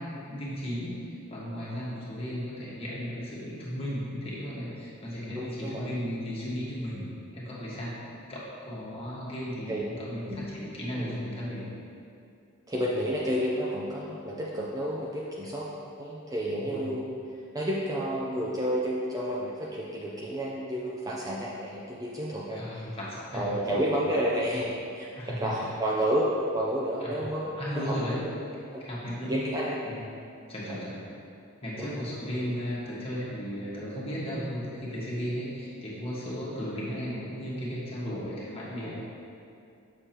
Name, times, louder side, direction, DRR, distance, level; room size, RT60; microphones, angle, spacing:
voice 1, 0.0-7.0 7.3-8.0 8.3-11.7 16.6-16.9 22.5-23.8 25.1-25.5 27.0-27.3 27.6-28.2 28.8-29.5 29.8-30.0 30.5-31.0 31.6-39.0, equal, 30° left, -7 dB, 1.6 m, -35 dB
voice 2, 5.3-5.9 9.7-9.8 10.2-10.5 10.9-11.2 12.7-15.7 16.0-17.1 17.5-22.9 23.3-24.7 24.9-25.1 25.4-28.0 28.7-28.8 29.3-29.7 30.7-30.8 31.8-31.9, equal, 15° right, -4 dB, 0.5 m, -30 dB
7.0 x 6.4 x 2.9 m, 2.5 s
head